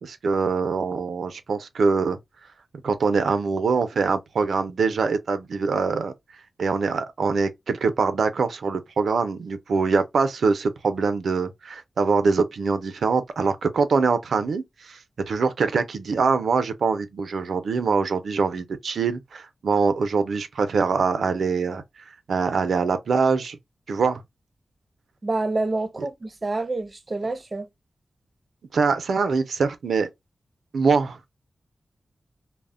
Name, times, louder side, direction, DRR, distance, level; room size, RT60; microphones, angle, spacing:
voice 1, 0.0-2.2 2.8-6.1 6.6-15.0 15.3-23.6 23.9-24.2 28.7-30.1 30.7-31.3, right 4 dB, 90° right, 0.4 m, -23 dB
voice 2, 25.2-27.7, right 2 dB, 35° right, 0.5 m, -27 dB
2.0 x 2.0 x 3.5 m
wide cardioid pair, 75°, 0 cm